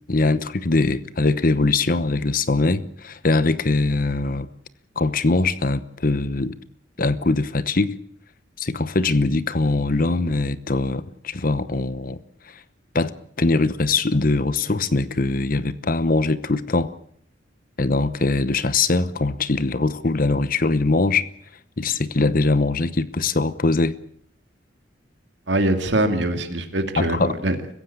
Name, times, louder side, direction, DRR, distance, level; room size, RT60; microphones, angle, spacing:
voice 1, 0.1-4.5 5.0-6.5 7.0-8.0 8.6-12.2 12.5-12.6 12.9-16.9 17.8-21.2 21.8-24.0 27.0-27.4, left 3 dB, 50° left, 0.9 m, -22 dB
voice 2, 25.5-27.6, right 1 dB, 70° right, 2.4 m, -23 dB
24.5 x 15.5 x 8.6 m
head